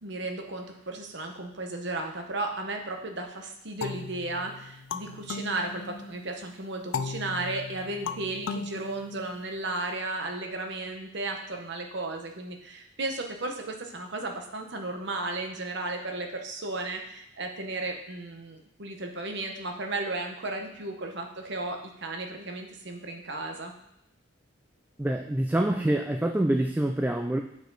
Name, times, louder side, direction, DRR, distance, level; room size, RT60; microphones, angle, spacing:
voice 1, 0.0-23.7, right 2 dB, 60° right, 3 dB, 1.0 m, -34 dB
sound 1, 3.8-6.3 6.9-9.7, left 5 dB, 85° left, 0.4 m, -37 dB
voice 2, 25.0-27.4, right 1 dB, 10° right, 4 dB, 0.3 m, -26 dB
8.2 x 4.9 x 3.9 m, 0.81 s
head